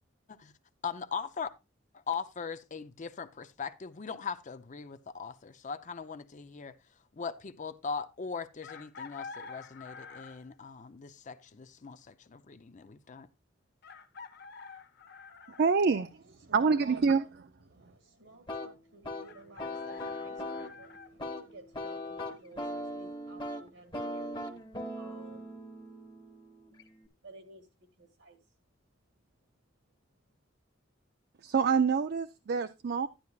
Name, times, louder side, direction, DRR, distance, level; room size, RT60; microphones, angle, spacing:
voice 1, 0.8-1.5 2.1-6.7 7.2-13.3, left 5 dB, 40° left, 0.6 m, -40 dB
Chicken rooster, 8.6-10.6 12.3-12.4 13.8-15.7 19.2-21.1, left 5 dB, 60° left, 0.9 m, -48 dB
voice 2, 15.6-16.1 16.5-17.3 31.4-33.1, right 5 dB, 55° right, 0.4 m, -26 dB
voice 3, 16.4-17.0 17.7-25.7 27.2-27.7 28.0-28.4, right 2 dB, 75° right, 2.0 m, -54 dB
sound 1, 18.5-27.1, left 1 dB, 25° left, 1.4 m, -40 dB
11.5 x 10.5 x 2.4 m
head